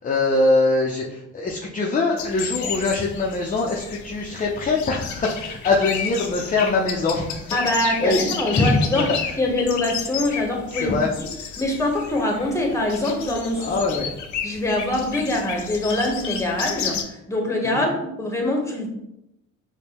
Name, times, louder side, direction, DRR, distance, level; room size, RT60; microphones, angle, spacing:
voice 1, 0.0-9.4 10.7-11.1 13.6-14.1 17.6-17.9, left 3 dB, 25° left, -1 dB, 0.5 m, -23 dB
sound 1, 2.2-17.0, left 7 dB, 70° left, 0.6 m, -32 dB
voice 2, 7.5-9.1 9.4-11.3 11.6-13.8 14.4-18.9, left 1 dB, 10° left, 0 dB, 1.0 m, -24 dB
5.2 x 2.2 x 2.9 m, 0.84 s
cardioid pair, 90°, 30 cm